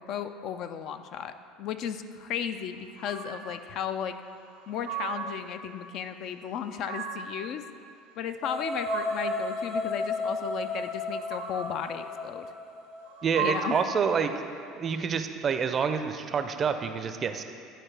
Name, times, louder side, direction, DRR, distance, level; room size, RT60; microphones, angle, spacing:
voice 1, 0.0-1.3 1.6-4.1 4.7-7.6 8.2-12.5 13.4-13.8, left 8 dB, 55° left, 9 dB, 0.4 m, -35 dB
sound 1, 3.0-3.6 4.5-5.5 6.4-7.4 8.4-9.5 11.0-11.9 13.0-14.0, right 6 dB, 85° right, 0.7 m, -37 dB
sound 2, 8.4-13.5, left 2 dB, 80° left, 1.5 m, -33 dB
voice 2, 13.2-14.3 14.8-17.4, right 6 dB, 40° right, 8 dB, 0.5 m, -28 dB
11.0 x 4.3 x 3.3 m, 2.4 s
hypercardioid pair, 70°, 0 cm